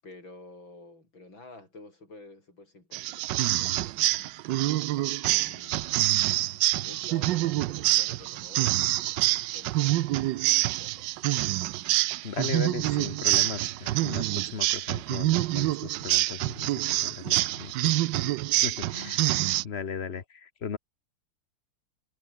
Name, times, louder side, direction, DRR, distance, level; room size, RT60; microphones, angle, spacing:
voice 1, 0.0-4.4 5.0-6.1 6.7-11.1, left 2 dB, 70° left, 8.5 m, -51 dB
sound 1, 2.9-19.6, right 16 dB, 75° right, 1.2 m, -26 dB
voice 2, 12.2-17.9 18.6-20.8, left 6 dB, 40° left, 1.1 m, -37 dB
omnidirectional pair, 2.2 m